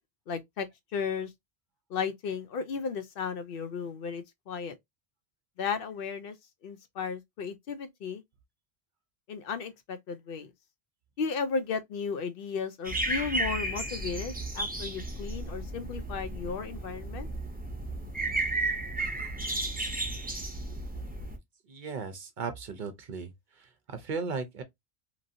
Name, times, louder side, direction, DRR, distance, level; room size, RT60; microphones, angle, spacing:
voice 1, 0.3-1.3 1.9-4.8 5.6-6.4 6.6-8.2 9.3-10.5 11.2-17.3, left 5 dB, 65° left, 0.7 m, -34 dB
sound 1, 12.8-21.4, right 2 dB, 10° right, 0.5 m, -33 dB
voice 2, 21.7-23.3 23.6-24.6, right 4 dB, 55° right, 0.7 m, -36 dB
3.0 x 2.6 x 2.5 m
omnidirectional pair, 1.1 m